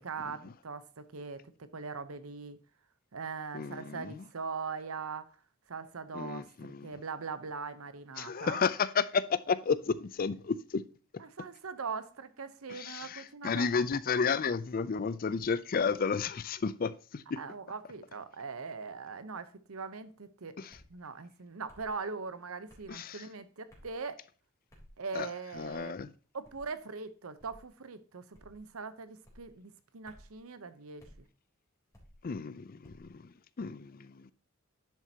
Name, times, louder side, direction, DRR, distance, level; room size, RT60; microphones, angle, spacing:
voice 1, 0.0-2.6 3.1-5.3 5.7-8.6 11.2-13.7 13.9-14.0 17.4-24.2 25.0-26.0 26.3-31.3, right 4 dB, 80° right, 0.9 m, -41 dB
voice 2, 3.5-4.2 6.1-6.9 8.2-10.8 12.7-17.4 20.6-20.8 22.9-23.2 25.1-25.3 25.6-26.1 32.2-34.3, left 5 dB, 45° left, 0.5 m, -32 dB
sound 1, 20.7-20.9 21.7-21.9 22.7-22.9 23.7-24.0 24.7-25.0 25.5-25.8 26.4-26.7 27.4-27.7 28.3-28.7 29.2-29.5 30.0-30.4 31.0-31.2 31.9-32.2 32.8-33.1, equal, 15° left, 3.5 m, -57 dB
10.5 x 7.5 x 2.9 m
head